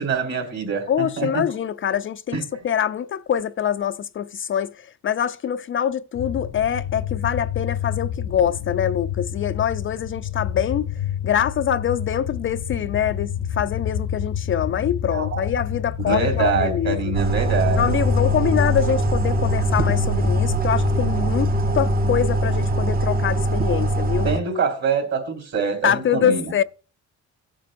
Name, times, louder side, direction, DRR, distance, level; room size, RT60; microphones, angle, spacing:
voice 1, 0.0-1.4 2.3-2.4 15.1-15.5 16.1-17.9 24.2-26.4, right 5 dB, 60° right, 3.5 m, -25 dB
voice 2, 0.9-10.9 11.2-17.0 17.8-24.4 25.8-26.6, left 9 dB, 45° left, 0.4 m, -24 dB
sound 1, 6.1-23.0, left 9 dB, 75° left, 0.7 m, -29 dB
sound 2, 17.1-24.4, right 2 dB, 30° right, 0.6 m, -22 dB
17.0 x 7.5 x 2.5 m
cardioid pair, 90°, 30 cm